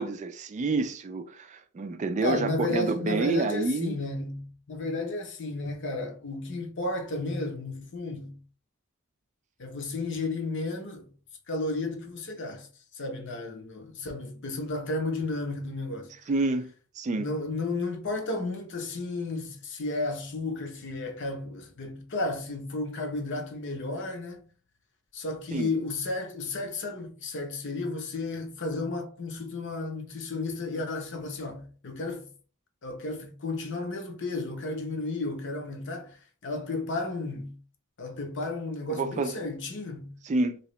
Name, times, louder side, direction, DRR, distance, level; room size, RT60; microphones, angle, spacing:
voice 1, 0.0-4.0 16.3-16.7 17.0-17.3 25.5-25.7 38.9-39.4 40.2-40.6, right 3 dB, 35° right, 0.3 m, -28 dB
voice 2, 2.2-8.4 9.6-11.1 11.5-12.7 12.9-16.1 17.2-24.4 25.1-32.3 32.8-36.2 36.4-37.6 38.0-40.1, left 2 dB, 55° left, 0.7 m, -33 dB
3.0 x 2.8 x 3.1 m
head